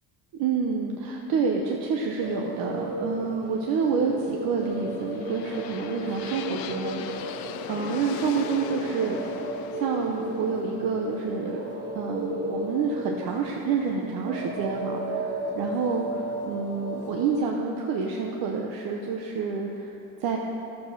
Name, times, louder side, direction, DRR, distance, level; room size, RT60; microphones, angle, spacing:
voice 1, 0.3-9.2 9.7-19.9 20.2-20.4, right 5 dB, 70° right, 0 dB, 1.0 m, -28 dB
sound 1, 2.2-17.4, right 1 dB, 45° right, 2.4 m, -35 dB
sound 2, 4.5-12.5, left 9 dB, 75° left, 0.7 m, -39 dB
11.5 x 7.3 x 6.1 m, 2.9 s
cardioid pair, 100°, 36 cm